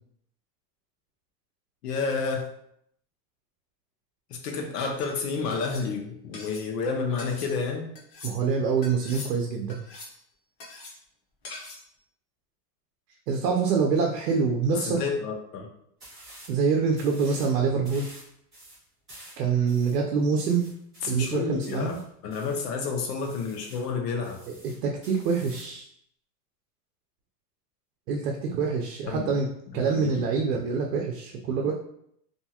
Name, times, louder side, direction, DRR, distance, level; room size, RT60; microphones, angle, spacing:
voice 1, 1.8-2.5 4.3-7.9 14.9-15.7 21.0-21.9 22.2-24.4 29.1-29.3 29.7-30.1, left 4 dB, 75° left, 2 dB, 0.8 m, -30 dB
sound 1, 5.0-5.1 5.5-5.9 6.3-6.7 7.2-7.5 7.9-8.4 8.8-9.3 9.7-10.2 10.6-10.9 11.4-11.8, left 2 dB, 40° left, 0.7 m, -42 dB
voice 2, 8.2-9.8 13.3-15.0 16.5-18.1 19.4-20.7 21.1-22.0 24.5-25.8 28.1-29.5 29.7-31.7, right 5 dB, 80° right, 1 dB, 0.6 m, -25 dB
sound 2, 16.0-16.6 16.9-17.5 17.8-22.7 23.2-23.9 24.2-25.8, right 1 dB, ahead, 0.4 m, -49 dB
2.7 x 2.3 x 2.8 m, 0.71 s
supercardioid pair, 180°, 48 cm